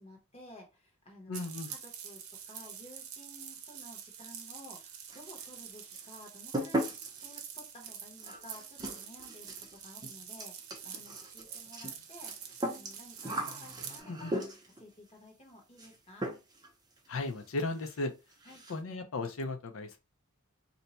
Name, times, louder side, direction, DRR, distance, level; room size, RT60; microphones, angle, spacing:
voice 1, 0.0-1.8 2.0-2.2 2.5-6.9 7.2-14.4 14.8-16.3 18.4-18.6, left 1 dB, 30° left, 1.1 m, -53 dB
voice 2, 1.3-1.7 14.1-14.3 17.1-18.1 18.7-20.0, left 2 dB, 65° left, 0.6 m, -36 dB
sound 1, 1.3-14.0, right 8 dB, 90° right, 0.6 m, -46 dB
sound 2, 5.1-5.7 5.9-14.8 15.8-16.0 16.2-16.7 17.0-17.1 17.4-17.5 17.8-18.0 18.3-18.8, right 1 dB, 20° right, 0.7 m, -39 dB
2.7 x 2.2 x 4.1 m
head